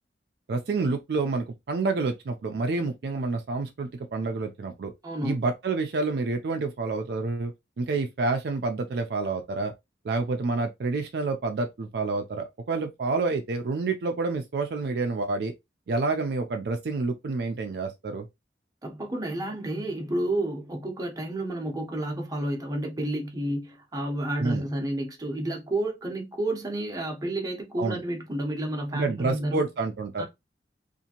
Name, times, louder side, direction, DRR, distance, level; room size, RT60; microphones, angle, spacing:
voice 1, 0.5-4.9 5.2-9.7 10.0-15.5 15.9-18.3 24.4-24.6 27.8-28.0 28.9-30.2, right 3 dB, 60° right, 0.4 m, -28 dB
voice 2, 5.0-5.3 18.8-29.6 30.2-30.3, right 1 dB, 20° right, 0.7 m, -30 dB
2.7 x 2.5 x 2.8 m
head